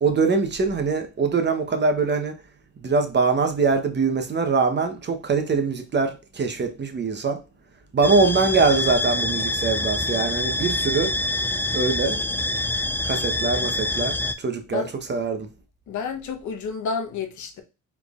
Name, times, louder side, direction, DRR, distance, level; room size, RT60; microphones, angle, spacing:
voice 1, 0.0-2.4 2.8-7.4 7.9-11.1 11.7-12.2 13.0-15.5, right 4 dB, 35° right, 0.9 m, -23 dB
sound 1, 8.0-14.3, left 2 dB, 5° left, 0.3 m, -26 dB
voice 2, 15.9-17.6, left 5 dB, 75° left, 1.0 m, -30 dB
4.3 x 3.5 x 2.4 m
cardioid pair, 90°, 30 cm